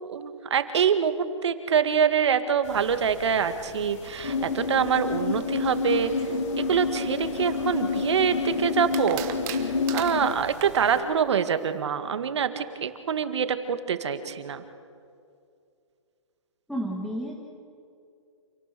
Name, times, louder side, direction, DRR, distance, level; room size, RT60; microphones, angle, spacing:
voice 1, 0.0-6.1 6.6-9.3 9.9-14.6, right 7 dB, 60° right, 10 dB, 1.9 m, -25 dB
sound 1, 2.6-11.0, left 3 dB, 30° left, 3.9 m, -46 dB
sound 2, 4.2-10.3, left 4 dB, 80° left, 1.7 m, -28 dB
Soft drink, 7.4-8.3 8.9-10.9, right 12 dB, 20° right, 1.1 m, -37 dB
voice 2, 16.7-17.4, equal, ahead, -2 dB, 1.6 m, -31 dB
28.0 x 18.0 x 6.9 m, 2.4 s
hypercardioid pair, 165°, 16 cm